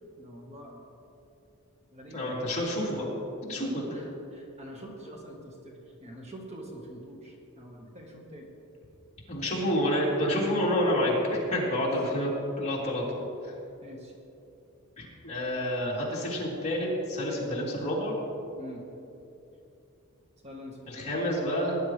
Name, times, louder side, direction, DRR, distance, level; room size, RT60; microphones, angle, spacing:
voice 1, 0.2-0.8 1.9-2.4 3.6-8.5 11.7-11.9 13.8-14.2 16.1-16.3 17.3-17.5 18.6-18.9 20.4-21.2, equal, 30° right, -1 dB, 1.4 m, -45 dB
voice 2, 2.1-3.0 3.4-3.9 9.3-12.3 12.6-13.2 13.4-13.5 15.0-18.2 20.9-21.8, equal, 35° left, -6 dB, 3.2 m, -28 dB
18.5 x 10.5 x 3.3 m, 2.8 s
head